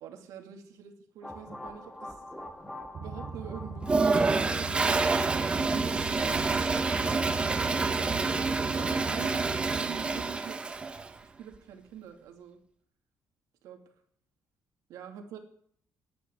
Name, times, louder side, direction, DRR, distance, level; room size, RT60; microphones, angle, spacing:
voice 1, 0.0-2.2 3.0-6.6 7.7-10.6 11.2-12.6 13.6-13.8 14.9-15.4, right 8 dB, 80° right, 4 dB, 2.5 m, -46 dB
sound 1, 1.2-6.0, left 1 dB, 5° left, 1.4 m, -45 dB
sound 2, 2.9-9.8, right 4 dB, 40° right, 1.6 m, -39 dB
Toilet flush, 3.8-11.1, right 3 dB, 20° right, 0.8 m, -27 dB
10.0 x 9.6 x 9.6 m, 0.63 s
cardioid pair, 170°, 6 cm